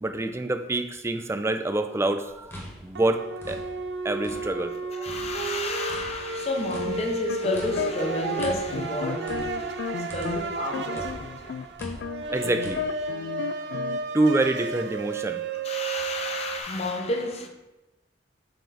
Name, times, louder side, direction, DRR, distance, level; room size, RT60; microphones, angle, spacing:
voice 1, 0.0-3.2 3.5-3.6 4.0-5.1 12.3-12.8 14.1-15.4, right 2 dB, 15° right, 0.4 m, -26 dB
sound 1, 1.1-1.4 2.9-16.6, right 4 dB, 70° right, 0.5 m, -33 dB
sound 2, 2.3-4.7 5.0-10.6 10.9-12.8, equal, 15° left, 1.2 m, -43 dB
voice 2, 5.0-11.6 15.6-17.5, left 2 dB, 35° left, 0.8 m, -31 dB
sound 3, 7.1-10.4 10.7-14.0, left 7 dB, 75° left, 0.3 m, -34 dB
6.9 x 4.5 x 3.9 m
head